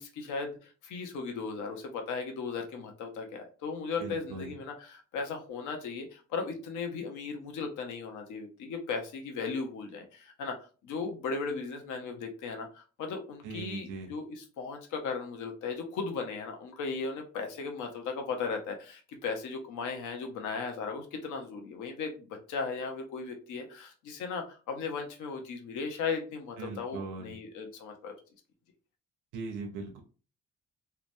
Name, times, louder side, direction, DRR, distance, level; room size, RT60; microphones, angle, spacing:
voice 1, 0.0-28.1, left 4 dB, 85° left, 3 dB, 0.7 m, -37 dB
voice 2, 4.0-4.6 13.4-14.1 26.6-27.4 29.3-30.0, right 3 dB, 80° right, 2 dB, 0.6 m, -40 dB
2.8 x 2.1 x 2.5 m, 0.37 s
cardioid pair, 90°, 30 cm